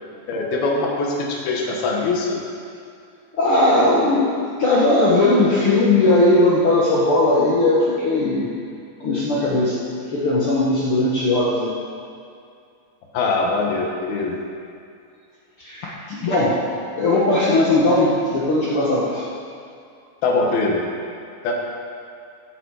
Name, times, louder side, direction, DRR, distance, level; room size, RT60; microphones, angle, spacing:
voice 1, 0.3-2.4 13.1-14.4 20.2-20.8 21.4-21.5, left 3 dB, 85° left, -1 dB, 3.3 m, -22 dB
voice 2, 3.3-8.5 9.0-9.8 10.1-11.7 15.6-16.6 17.0-19.2, left 2 dB, 65° left, -6 dB, 1.3 m, -18 dB
15.0 x 6.9 x 4.8 m, 2.4 s
omnidirectional pair, 4.2 m